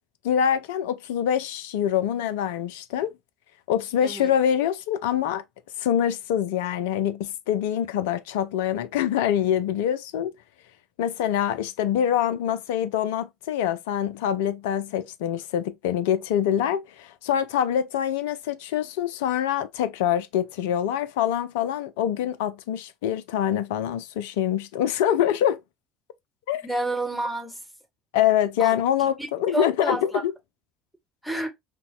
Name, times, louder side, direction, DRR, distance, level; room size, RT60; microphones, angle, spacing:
voice 1, 0.2-3.1 3.7-5.4 5.8-10.3 11.0-25.6 26.5-26.6 28.1-30.3, left 10 dB, 65° left, 0.4 m, -25 dB
voice 2, 26.6-27.6 28.6-29.3 29.5-30.2 31.2-31.5, right 2 dB, ahead, 1.1 m, -30 dB
4.0 x 2.2 x 2.4 m
figure-of-eight pair, 60°, 0 cm